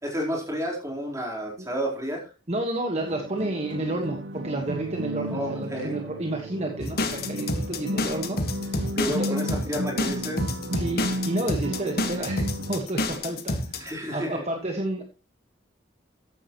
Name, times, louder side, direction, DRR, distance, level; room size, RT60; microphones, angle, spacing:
voice 1, 0.0-2.3 5.3-6.0 8.9-10.4 13.8-14.4, equal, 15° right, -1 dB, 4.1 m, -31 dB
voice 2, 2.5-9.4 10.7-13.9 14.1-15.0, right 2 dB, 35° right, 3 dB, 1.5 m, -31 dB
sound 1, 3.0-12.8, equal, 65° right, 1.0 m, -33 dB
sound 2, 6.8-13.9, left 2 dB, 55° left, 1.6 m, -28 dB
14.0 x 9.9 x 3.1 m, 0.32 s
head